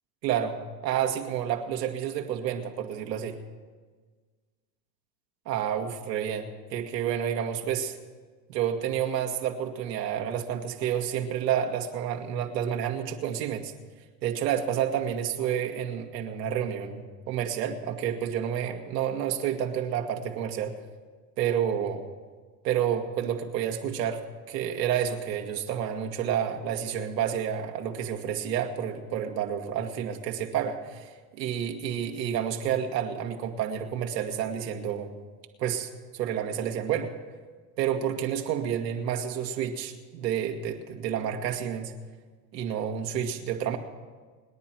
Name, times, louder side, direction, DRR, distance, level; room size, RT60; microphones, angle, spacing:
voice 1, 0.2-3.4 5.5-8.0 8.5-13.7 14.2-20.7 21.4-22.0 22.6-35.1 35.6-37.1 37.8-41.9 42.5-43.8, right 9 dB, 85° right, 3 dB, 2.0 m, -30 dB
28.0 x 10.0 x 4.6 m, 1.5 s
hypercardioid pair, 100°, 49 cm